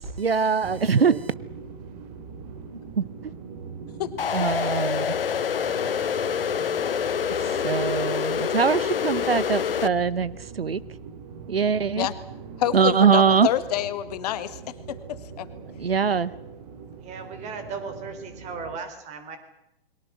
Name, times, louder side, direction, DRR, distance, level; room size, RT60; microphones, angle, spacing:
voice 1, 0.2-1.3 3.0-3.3 4.3-5.1 7.6-10.8 11.5-12.1 12.7-13.5 15.8-16.3, right 6 dB, 80° right, 1.1 m, -22 dB
sound 1, 0.6-18.8, right 5 dB, 45° right, 2.9 m, -41 dB
sound 2, 4.2-9.9, left 8 dB, 70° left, 0.8 m, -26 dB
voice 2, 12.6-14.6 14.9-15.5, left 11 dB, 40° left, 1.7 m, -27 dB
voice 3, 17.0-19.4, right 5 dB, 25° right, 4.0 m, -36 dB
29.0 x 22.5 x 6.3 m
figure-of-eight pair, 125°, 29 cm